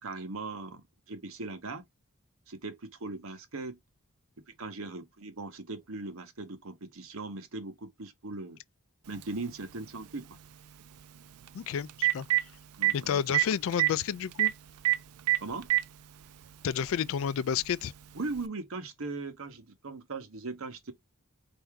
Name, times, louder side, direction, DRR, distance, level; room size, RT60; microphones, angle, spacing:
voice 1, 0.0-1.8 2.5-3.8 4.6-8.6 9.0-10.4 12.8-13.2 15.4-15.7 18.1-20.9, right 3 dB, 70° right, 1.0 m, -39 dB
Telephone, 9.2-9.3 11.5-11.6 11.9-12.4 12.8-12.9 13.3-13.4 13.7-13.9 14.4-14.5 14.8-15.0 15.3-15.8 16.8-16.9 18.4-18.5, right 15 dB, 90° right, 0.4 m, -23 dB
voice 2, 11.5-12.3 12.9-14.5 16.6-17.9, left 8 dB, 65° left, 0.3 m, -30 dB
4.6 x 2.6 x 3.7 m
head